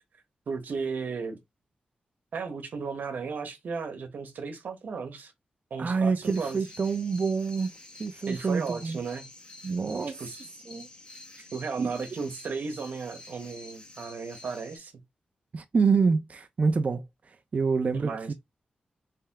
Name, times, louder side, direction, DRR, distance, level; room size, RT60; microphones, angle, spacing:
voice 1, 0.5-1.4 2.3-5.3 5.7-6.6 8.3-9.2 10.2-10.4 11.5-14.9 18.0-18.3, right 5 dB, 75° right, 1.1 m, -35 dB
voice 2, 5.8-7.7 8.0-9.0 9.6-10.2 10.7-10.9 11.8-11.9 15.5-18.3, right 5 dB, 50° right, 0.5 m, -27 dB
sound 1, 6.2-14.8, left 2 dB, 35° left, 1.3 m, -49 dB
3.4 x 2.8 x 3.5 m
cardioid pair, 75°, 3 cm